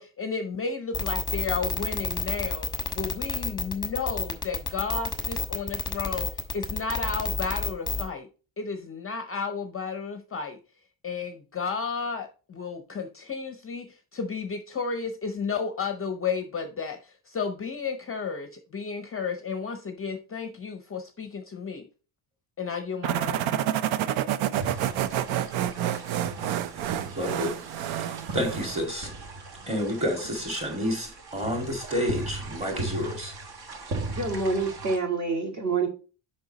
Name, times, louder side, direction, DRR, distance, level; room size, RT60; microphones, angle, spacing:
voice 1, 0.0-2.7 2.9-8.3 8.6-10.6 11.0-21.9 22.6-23.4, left 5 dB, 30° left, 0.6 m, -33 dB
sound 1, 0.9-8.1, left 4 dB, 10° left, 1.0 m, -29 dB
sound 2, 23.0-28.8, right 11 dB, 70° right, 0.7 m, -28 dB
sound 3, 24.6-35.0, right 2 dB, 50° right, 1.6 m, -38 dB
voice 2, 27.0-27.6 28.0-29.1 29.7-33.4, equal, 15° right, 2.1 m, -30 dB
voice 3, 34.1-35.9, right 4 dB, 35° right, 1.9 m, -27 dB
6.8 x 5.4 x 4.0 m
cardioid pair, 165°, 48 cm